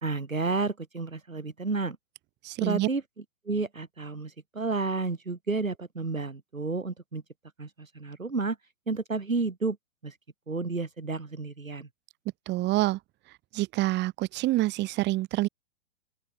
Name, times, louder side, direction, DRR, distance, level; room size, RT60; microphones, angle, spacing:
voice 1, 0.0-2.0 2.6-3.0 3.5-7.2 7.6-7.7 7.9-8.6 8.9-9.8 10.0-10.1 10.5-11.9, right 3 dB, 85° right, 2.8 m, -31 dB
voice 2, 2.4-2.9 12.5-13.0 13.5-15.5, right 18 dB, 25° right, 4.3 m, -27 dB
open air
figure-of-eight pair, 115°, 39 cm